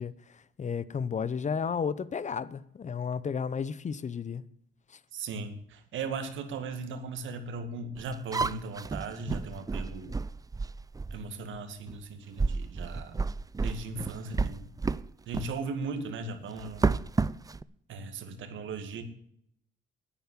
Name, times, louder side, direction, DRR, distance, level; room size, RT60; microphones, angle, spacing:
voice 1, 0.0-4.4 4.9-5.0, left 6 dB, 35° left, 0.8 m, -33 dB
voice 2, 5.1-10.1 11.1-13.1 13.6-14.7 15.3-17.0 17.9-19.0, right 3 dB, 75° right, 2.1 m, -38 dB
sound 1, 8.0-11.3 11.9-12.0 12.4-15.1 15.3-15.5 16.6-17.6, right 4 dB, 20° right, 0.5 m, -31 dB
10.5 x 9.5 x 7.4 m
cardioid pair, 90°, 20 cm